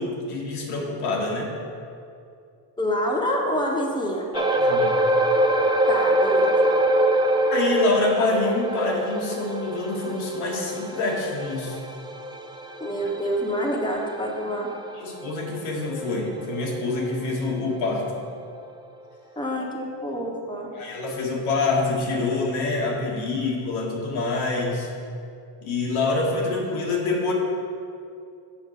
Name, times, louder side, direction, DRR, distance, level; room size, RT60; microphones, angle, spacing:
voice 1, 0.0-1.5 4.3-5.0 7.5-11.8 15.0-18.2 20.7-24.9 25.6-27.3, left 3 dB, 75° left, -2 dB, 1.8 m, -26 dB
voice 2, 2.8-4.2 5.9-6.5 12.8-14.7 19.4-20.7, equal, 10° left, -1 dB, 1.3 m, -27 dB
sound 1, 4.3-17.0 17.4-17.6 18.1-18.2, right 1 dB, 10° right, 0.4 m, -25 dB
6.9 x 4.5 x 6.5 m, 2.5 s
supercardioid pair, 85°, 49 cm